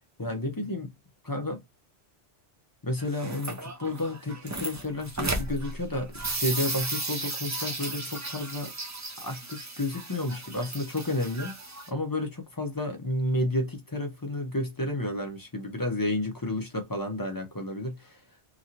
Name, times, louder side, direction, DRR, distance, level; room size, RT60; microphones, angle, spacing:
voice 1, 0.2-0.9 1.2-1.6 2.8-8.7 9.2-11.6 11.9-18.2, left 1 dB, 20° left, 0.6 m, -31 dB
sound 1, 3.0-11.9, right 2 dB, 25° right, 0.3 m, -35 dB
2.9 x 2.7 x 2.5 m
omnidirectional pair, 1.2 m